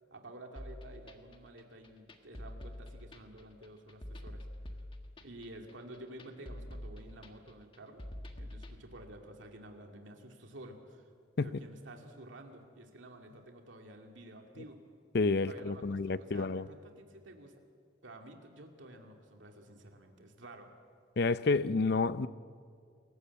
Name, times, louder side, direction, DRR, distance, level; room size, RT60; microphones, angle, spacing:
voice 1, 0.1-4.5 5.2-8.0 8.3-11.1 11.4-14.8 15.4-17.5 18.0-20.7, right 1 dB, 80° right, 2.4 m, -51 dB
sound 1, 0.6-8.8, left 1 dB, 25° left, 1.5 m, -46 dB
voice 2, 15.1-16.6 21.2-22.3, left 3 dB, 55° left, 0.6 m, -29 dB
28.0 x 15.5 x 8.3 m
head